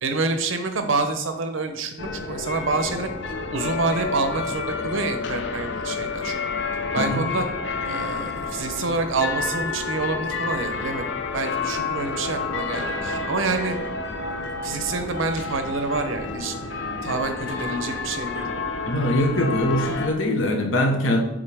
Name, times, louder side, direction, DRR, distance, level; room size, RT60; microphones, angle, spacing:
voice 1, 0.0-3.1 3.5-6.4 6.9-7.5 7.8-11.0 11.3-13.7 14.6-16.6 17.0-18.5, right 3 dB, 85° right, 7 dB, 0.7 m, -27 dB
sound 1, 2.0-20.1, left 4 dB, 65° left, 0.6 m, -29 dB
voice 2, 18.9-21.2, left 1 dB, 85° left, 3 dB, 1.1 m, -22 dB
7.3 x 3.8 x 3.4 m, 0.91 s
head